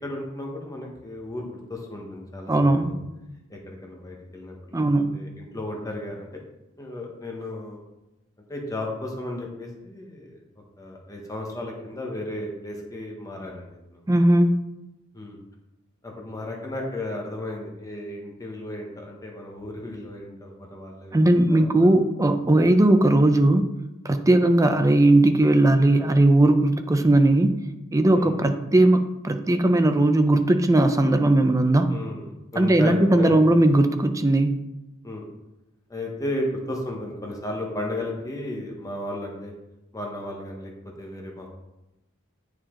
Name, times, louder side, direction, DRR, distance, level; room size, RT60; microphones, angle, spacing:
voice 1, 0.0-2.5 2.9-3.0 3.5-4.8 5.1-6.3 6.8-7.8 8.5-10.4 10.8-14.0 15.1-15.4 16.0-21.6 28.1-28.6 31.9-33.4 35.0-35.2 35.9-39.5 39.9-40.7 41.0-41.5, left 1 dB, 15° left, 0 dB, 1.1 m, -34 dB
voice 2, 2.5-3.0 4.7-5.1 14.1-14.6 21.1-23.7 24.0-27.5 27.9-31.9 32.6-34.6, right 1 dB, 15° right, 8 dB, 0.4 m, -18 dB
8.9 x 4.8 x 3.7 m, 0.96 s
head